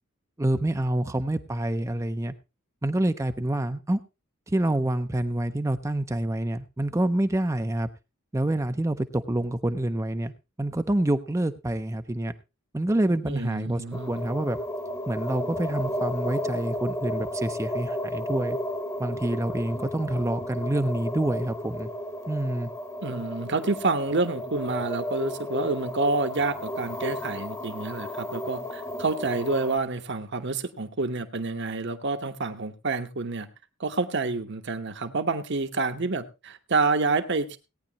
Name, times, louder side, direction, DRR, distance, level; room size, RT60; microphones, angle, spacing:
voice 1, 0.4-2.3 2.8-4.0 4.5-7.9 8.3-10.3 10.6-12.3 12.7-14.6 15.1-18.6 19.0-21.9 22.3-22.7, right 1 dB, 15° right, 9 dB, 0.5 m, -27 dB
voice 2, 13.2-14.2 23.0-33.5 33.8-37.6, right 3 dB, 55° right, 8 dB, 1.1 m, -28 dB
sound 1, 13.9-29.8, left 1 dB, 15° left, 1.0 m, -33 dB
17.5 x 9.6 x 2.9 m, 0.27 s
head